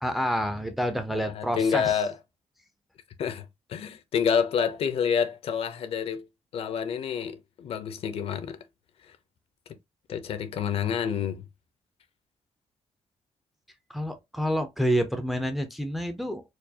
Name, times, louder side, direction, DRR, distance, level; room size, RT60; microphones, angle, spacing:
voice 1, 0.0-2.0 13.9-16.4, equal, ahead, 0.5 m, -28 dB
voice 2, 1.1-2.1 3.2-6.2 6.5-8.6 10.1-11.4, left 7 dB, 60° left, 0.6 m, -28 dB
4.5 x 2.3 x 2.7 m
wide cardioid pair, 175°, 11 cm